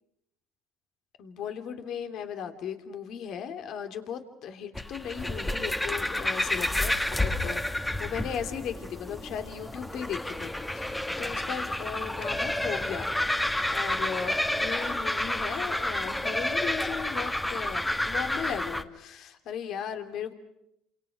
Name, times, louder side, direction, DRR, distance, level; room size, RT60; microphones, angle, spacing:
voice 1, 1.2-13.1 13.7-20.3, left 8 dB, 65° left, 7 dB, 3.1 m, -37 dB
sound 1, 4.7-18.8, left 1 dB, 10° left, 1.7 m, -30 dB
30.0 x 27.5 x 6.3 m, 0.78 s
supercardioid pair, 85°, 0 cm